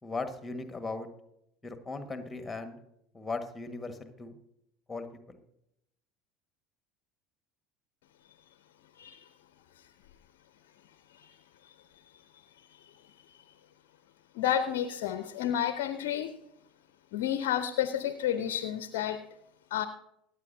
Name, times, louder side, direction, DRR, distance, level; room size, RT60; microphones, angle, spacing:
voice 1, 0.0-1.1 1.6-2.8 3.1-4.4 4.9-5.4, left 3 dB, 15° left, 8 dB, 1.5 m, -38 dB
voice 2, 14.4-16.3 17.1-19.2 19.7-19.9, left 10 dB, 60° left, 12 dB, 0.6 m, -30 dB
24.5 x 8.8 x 2.7 m, 0.81 s
figure-of-eight pair, 70°, 0 cm